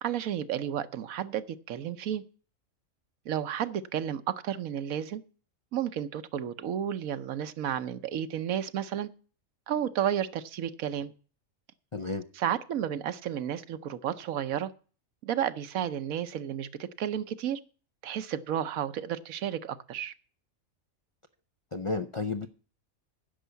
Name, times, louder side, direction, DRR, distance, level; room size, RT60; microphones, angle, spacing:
voice 1, 0.0-2.2 3.2-5.2 5.7-9.1 9.7-11.1 12.4-14.7 15.2-17.6 18.0-20.1, right 10 dB, 80° right, 1.2 m, -32 dB
voice 2, 11.9-12.3 21.7-22.5, left 3 dB, 50° left, 0.4 m, -32 dB
10.0 x 6.5 x 8.1 m
omnidirectional pair, 1.4 m